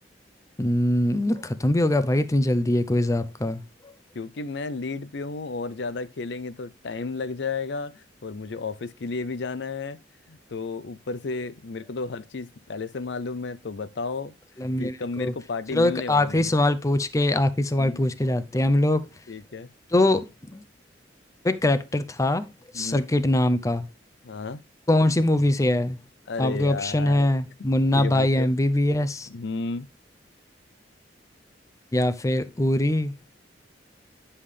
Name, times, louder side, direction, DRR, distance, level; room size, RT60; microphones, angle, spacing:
voice 1, 0.6-3.9 14.6-15.3 15.7-19.0 19.9-20.6 21.4-22.5 22.7-23.9 24.9-26.0 26.4-29.3 31.9-33.1, left 1 dB, 15° left, 0.5 m, -23 dB
voice 2, 4.1-10.0 10.3-14.3 14.8-16.5 17.8-18.0 19.3-19.7 22.7-23.0 24.2-24.6 26.3-27.2 27.9-28.5 29.3-29.9, left 4 dB, 65° left, 0.5 m, -33 dB
9.7 x 5.5 x 3.2 m
head